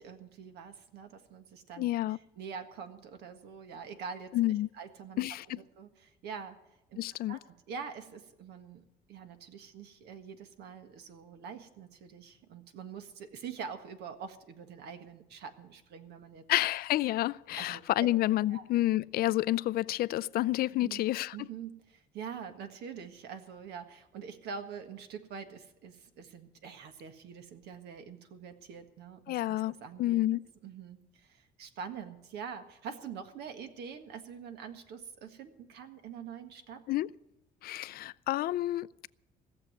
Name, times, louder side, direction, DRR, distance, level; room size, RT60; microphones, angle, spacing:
voice 1, 0.0-4.4 4.7-5.3 5.8-6.6 6.9-16.4 17.6-18.1 18.5-18.6 20.8-21.0 21.3-30.2 30.6-36.8, right 6 dB, 75° right, 1.7 m, -45 dB
voice 2, 1.8-2.2 4.3-4.7 5.2-5.6 7.0-7.4 16.5-21.4 29.3-30.4 36.9-37.1 37.6-39.1, left 15 dB, 65° left, 0.4 m, -29 dB
16.5 x 7.1 x 9.5 m
cardioid pair, 110°, 17 cm